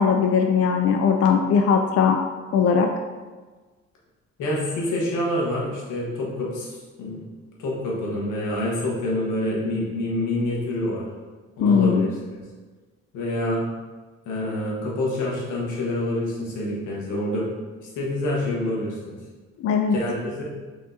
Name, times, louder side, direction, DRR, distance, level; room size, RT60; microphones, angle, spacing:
voice 1, 0.0-2.2 2.5-2.9 11.6-12.1 19.6-20.0, left 6 dB, 55° left, 4 dB, 0.4 m, -19 dB
voice 2, 4.4-7.2 7.6-11.1 11.6-12.4 13.1-13.6 14.2-17.5 17.8-19.2 19.9-20.4, left 1 dB, 90° left, -4 dB, 1.4 m, -27 dB
5.1 x 3.7 x 2.7 m, 1.3 s
cardioid pair, 90°, 30 cm